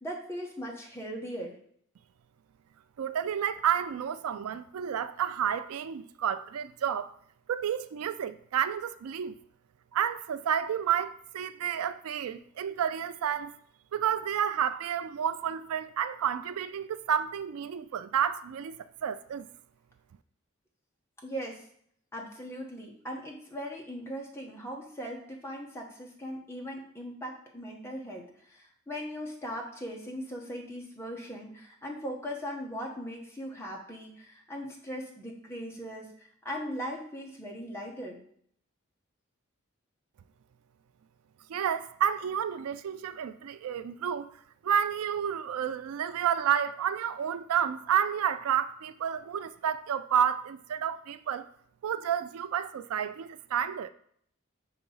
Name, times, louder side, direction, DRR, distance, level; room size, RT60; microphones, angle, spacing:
voice 1, 0.0-1.6 21.2-21.6 22.1-38.2, equal, 10° left, 1.0 m, -39 dB
voice 2, 3.0-7.1 7.5-9.4 9.9-13.6 13.9-19.5 41.5-44.3 44.6-51.5 51.8-53.9, right 8 dB, 85° right, 0.4 m, -30 dB
5.8 x 3.0 x 5.4 m
head